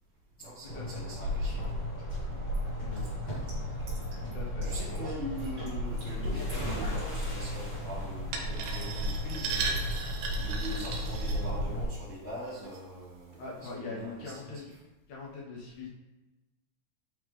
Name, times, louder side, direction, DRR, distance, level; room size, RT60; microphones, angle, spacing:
voice 1, 0.4-1.7 3.3-3.4 4.6-14.7, equal, 50° left, -13 dB, 1.3 m, -42 dB
sound 1, 0.7-11.8, left 1 dB, 65° left, 0.9 m, -34 dB
sound 2, 1.5-1.6 2.5-4.3 4.6-5.1 5.4-5.7 6.0-7.3, right 2 dB, 45° right, 1.5 m, -46 dB
voice 2, 2.8-3.1 4.2-5.0 13.4-14.7 15.1-15.9, left 3 dB, 80° left, -3 dB, 1.7 m, -42 dB
sound 3, 8.3-11.9 12.5-12.8 13.3-13.4, right 5 dB, 80° right, 2.6 m, -36 dB
8.6 x 3.6 x 3.3 m, 1.1 s
omnidirectional pair, 5.2 m